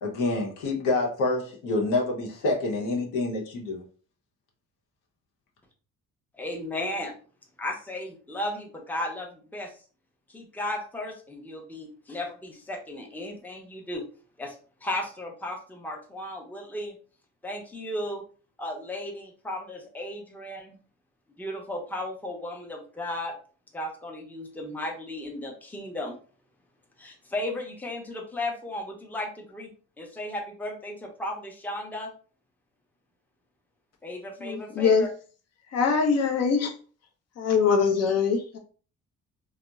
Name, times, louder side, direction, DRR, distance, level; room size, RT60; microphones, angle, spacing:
voice 1, 0.0-3.8, left 2 dB, 85° left, -1 dB, 0.9 m, -27 dB
voice 2, 6.4-7.2 7.6-9.8 10.3-14.0 14.4-14.6 14.8-17.0 17.4-18.2 18.6-20.8 21.4-23.3 23.7-26.2 27.0-29.7 30.0-32.1 34.0-35.1, left 1 dB, 5° left, 0 dB, 0.6 m, -35 dB
voice 3, 34.4-35.0 35.7-36.7 37.4-38.6, left 5 dB, 55° left, 4 dB, 0.7 m, -23 dB
2.8 x 2.0 x 2.3 m, 0.40 s
cardioid pair, 90°, 30 cm